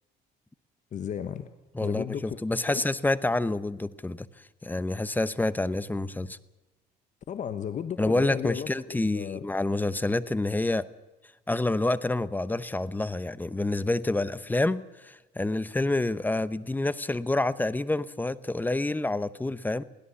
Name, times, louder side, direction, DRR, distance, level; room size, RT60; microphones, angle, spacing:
voice 1, 0.9-1.5 1.8-2.4 2.7-2.9 7.3-9.4, left 8 dB, 45° left, 11 dB, 1.1 m, -34 dB
voice 2, 1.7-4.3 4.6-6.4 8.0-10.9 11.5-19.8, left 2 dB, 10° left, 16 dB, 0.8 m, -28 dB
22.0 x 16.5 x 7.1 m, 1.1 s
cardioid pair, 110°, 17 cm